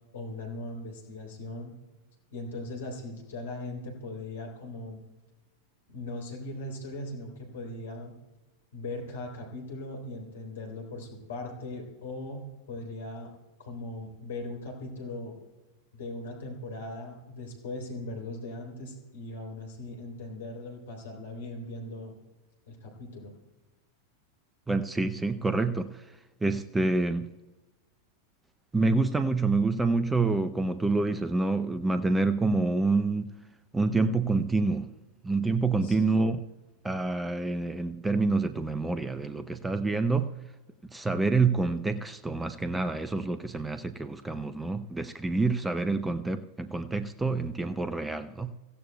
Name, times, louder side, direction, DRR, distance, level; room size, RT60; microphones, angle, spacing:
voice 1, 0.1-1.7 2.3-5.0 5.9-8.1 8.7-13.3 13.6-15.4 15.9-22.1 22.7-23.3 35.8-36.1, left 2 dB, 60° left, 3.5 m, -39 dB
voice 2, 24.7-25.9 26.4-27.3 28.7-33.3 33.7-34.9 35.2-36.4 36.8-40.3 40.9-48.5, right 3 dB, 10° right, 0.5 m, -27 dB
26.0 x 15.5 x 2.2 m
figure-of-eight pair, 90°, 0 cm